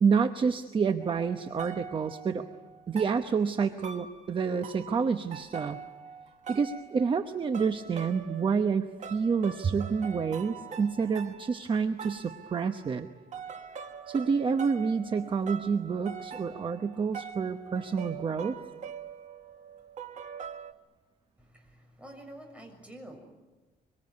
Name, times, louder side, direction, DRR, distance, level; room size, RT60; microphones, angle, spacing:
voice 1, 0.0-2.4 2.9-5.8 6.5-13.1 14.1-18.6, right 5 dB, 35° right, 8 dB, 0.9 m, -28 dB
sound 1, 1.0-20.7, right 7 dB, 50° right, 1.5 m, -44 dB
voice 2, 21.4-23.2, right 1 dB, 10° right, 2 dB, 6.8 m, -48 dB
25.0 x 24.0 x 9.6 m, 1.2 s
cardioid pair, 145°, 16 cm